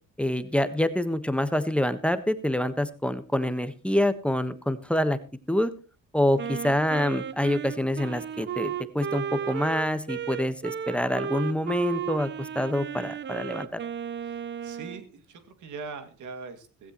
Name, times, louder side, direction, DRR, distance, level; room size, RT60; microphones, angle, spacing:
voice 1, 0.2-5.2 5.5-5.7 6.1-13.8, left 1 dB, 5° left, 10 dB, 1.2 m, -26 dB
Wind instrument woodwind instrument, 6.4-15.0, right 8 dB, 40° right, 0.6 m, -34 dB
voice 2, 14.2-16.9, right 4 dB, 75° right, 8 dB, 2.3 m, -42 dB
16.0 x 16.0 x 3.0 m, 0.33 s
cardioid pair, 90°, 30 cm